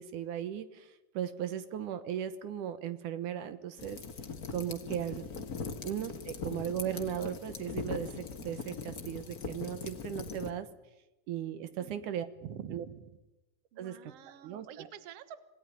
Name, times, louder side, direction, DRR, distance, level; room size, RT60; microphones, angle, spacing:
voice 1, 0.0-4.0 4.5-5.3 5.8-10.7 11.3-12.3 12.7-12.8 13.8-14.0 14.4-14.9, right 10 dB, 75° right, 12 dB, 2.5 m, -37 dB
sound 1, 3.8-10.5, left 4 dB, 35° left, 1.7 m, -41 dB
voice 2, 11.8-12.2 12.4-13.1 13.7-15.4, right 9 dB, 55° right, 13 dB, 2.2 m, -47 dB
27.0 x 18.0 x 9.9 m, 1.0 s
omnidirectional pair, 3.6 m